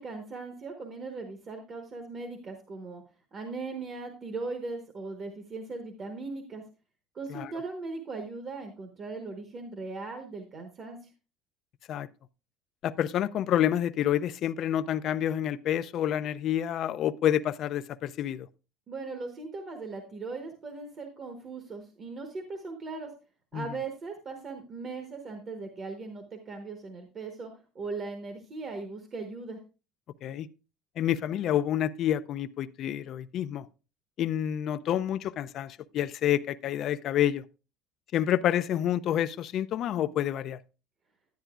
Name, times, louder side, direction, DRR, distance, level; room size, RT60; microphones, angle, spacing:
voice 1, 0.0-3.0 3.3-6.6 7.1-11.0 18.9-23.1 23.5-27.5 27.7-29.6, right 3 dB, 35° right, 1.0 m, -39 dB
voice 2, 12.8-18.5 23.5-23.6 30.2-30.5 31.0-33.7 34.2-37.4 38.1-40.6, left 11 dB, 45° left, 0.4 m, -28 dB
10.5 x 10.0 x 2.4 m
cardioid pair, 140°, 0 cm